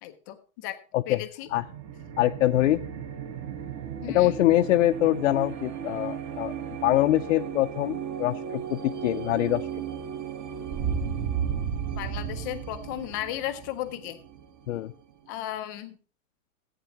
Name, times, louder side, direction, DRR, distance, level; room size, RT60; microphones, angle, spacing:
voice 1, 0.0-0.8 1.1-1.5 4.0-4.4 12.0-14.2 15.3-16.0, left 13 dB, 15° left, 8 dB, 0.4 m, -35 dB
voice 2, 0.9-1.2 1.5-1.6 2.2-2.9 4.1-6.5 6.8-9.7 14.7-14.9, left 15 dB, 65° left, 6 dB, 0.6 m, -24 dB
sound 1, 1.5-14.9, right 7 dB, 30° right, 1.1 m, -34 dB
15.0 x 8.7 x 2.9 m, 0.38 s
hypercardioid pair, 150°, 42 cm